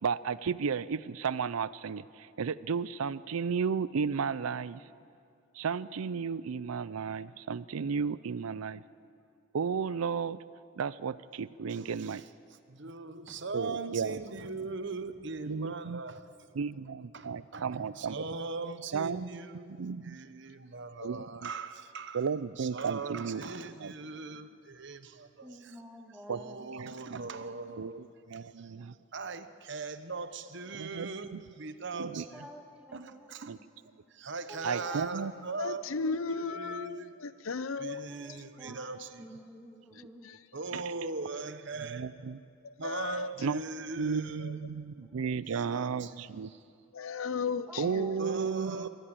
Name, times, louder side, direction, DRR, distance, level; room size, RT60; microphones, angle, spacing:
voice 1, 0.0-4.9 5.5-8.8 9.5-10.4 10.8-12.2 13.5-14.2 15.5-16.0 16.5-18.2 18.9-20.2 21.0-21.5 22.1-23.4 23.8-23.9 26.3-26.4 26.7-27.3 27.8-29.0 30.7-31.4 31.9-32.2 33.5-33.6 34.6-35.3 38.7-38.8 39.9-40.0 40.7-40.8 41.9-42.4 43.4-43.6 44.0-46.5 47.8-48.9, right 6 dB, 85° right, 18 dB, 0.5 m, -34 dB
voice 2, 11.7-12.2 12.7-16.3 17.1-19.8 20.0-22.2 22.6-25.8 26.3-28.1 28.3-28.7 29.1-32.5 32.9-35.8 36.3-37.1 37.8-39.3 40.5-42.1 42.8-44.6 45.4-46.2 46.5-46.6 48.2-48.9, right 3 dB, 55° right, 11 dB, 1.0 m, -40 dB
voice 3, 25.4-26.7 32.1-33.5 34.5-35.1 35.9-36.1 38.1-40.3 41.1-41.4 45.0-45.9 47.7-48.9, equal, 5° right, 2 dB, 1.8 m, -50 dB
voice 4, 35.6-38.1 40.2-40.4 42.6-43.3 44.4-44.5 46.9-48.3, left 4 dB, 75° left, 16 dB, 0.6 m, -36 dB
24.0 x 14.5 x 8.9 m, 2.4 s
head